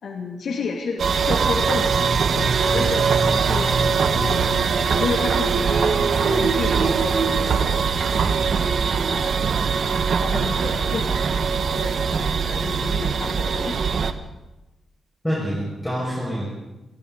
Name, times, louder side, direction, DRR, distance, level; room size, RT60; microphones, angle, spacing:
voice 1, 0.0-2.1 2.6-3.8 4.2-4.7 5.0-5.9 6.2-8.7 9.1-9.4 9.9-13.9, left 4 dB, 60° left, 0 dB, 2.6 m, -31 dB
sound 1, 1.0-14.1, right 6 dB, 50° right, 1.3 m, -22 dB
sound 2, 1.2-8.1, right 3 dB, 75° right, 4.6 m, -28 dB
voice 2, 2.7-3.4 15.2-16.7, equal, 5° left, -6 dB, 6.1 m, -27 dB
29.0 x 23.0 x 4.1 m, 1.0 s
wide cardioid pair, 170°, 0 cm